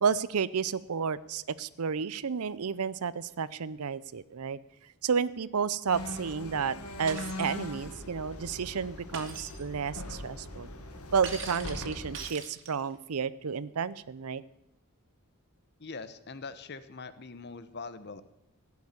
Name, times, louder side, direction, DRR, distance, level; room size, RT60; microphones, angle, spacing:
voice 1, 0.0-4.6 5.0-10.7 11.1-14.4, right 6 dB, 80° right, 18 dB, 0.6 m, -31 dB
sound 1, 5.9-12.3, left 1 dB, 90° left, 1.9 m, -41 dB
Shatter, 7.1-7.5 9.1-9.6 11.2-12.9, right 5 dB, 60° right, 2.4 m, -41 dB
voice 2, 15.8-18.2, left 4 dB, 50° left, 13 dB, 0.9 m, -42 dB
16.0 x 7.2 x 9.6 m, 0.85 s
head